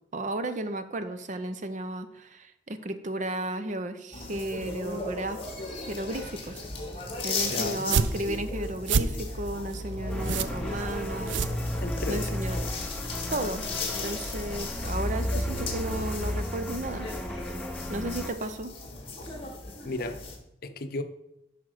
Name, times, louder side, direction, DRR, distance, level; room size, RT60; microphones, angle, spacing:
voice 1, 0.1-5.4 5.7-6.6 7.2-11.3 12.1-12.7 13.3-13.7 14.0-17.1 17.9-18.7, right 1 dB, 45° right, 10 dB, 0.6 m, -34 dB
sound 1, 4.1-20.4, left 2 dB, 30° left, 1.6 m, -35 dB
voice 2, 7.5-7.9 11.8-12.3 19.8-20.2 20.6-21.0, left 2 dB, 55° left, 8 dB, 0.7 m, -34 dB
sound 2, 7.7-12.2, right 5 dB, 90° right, 0.5 m, -30 dB
sound 3, 10.1-18.3, left 1 dB, 5° left, 0.7 m, -35 dB
7.7 x 5.9 x 4.9 m, 0.82 s
head